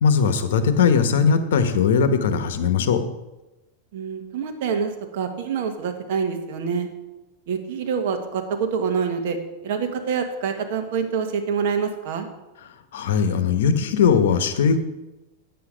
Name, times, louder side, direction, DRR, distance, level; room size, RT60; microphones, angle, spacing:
voice 1, 0.0-3.0 12.9-14.8, left 6 dB, 80° left, 10 dB, 1.1 m, -19 dB
voice 2, 3.9-6.9 7.5-9.4 9.6-12.3, right 6 dB, 60° right, 6 dB, 1.4 m, -26 dB
9.3 x 8.2 x 5.1 m, 1.0 s
supercardioid pair, 155°, 0 cm